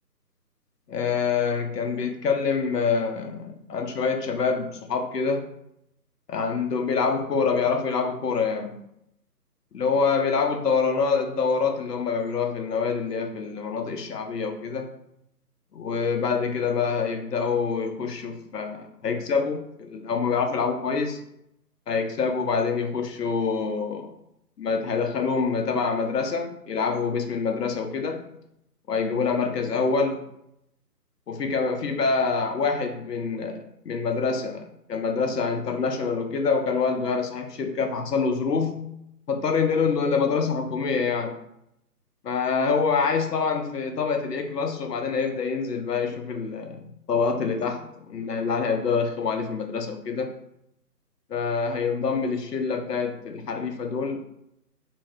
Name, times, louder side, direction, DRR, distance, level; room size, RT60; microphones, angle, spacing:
voice 1, 0.9-5.5 6.3-8.8 9.7-14.9 15.7-21.2 21.9-24.1 24.6-28.3 28.9-30.2 31.3-34.6 34.9-38.9 39.3-41.4 42.2-50.3 51.3-54.2, left 5 dB, 75° left, 5 dB, 0.7 m, -26 dB
2.6 x 2.1 x 3.3 m, 0.78 s
figure-of-eight pair, 160°, 49 cm